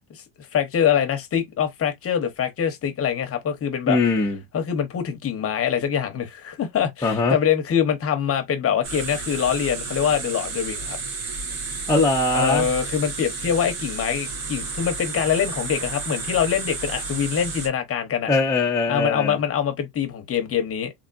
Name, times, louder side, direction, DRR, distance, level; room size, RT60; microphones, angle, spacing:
voice 1, 0.1-4.0 4.5-11.0 12.3-18.3 18.9-20.9, left 8 dB, 30° left, 0.8 m, -24 dB
voice 2, 3.9-4.4 7.0-7.4 11.9-12.7 18.3-19.4, left 3 dB, 5° left, 0.5 m, -21 dB
sound 1, 8.8-17.7, right 4 dB, 90° right, 1.9 m, -32 dB
3.6 x 3.5 x 2.5 m
cardioid pair, 160°, 49 cm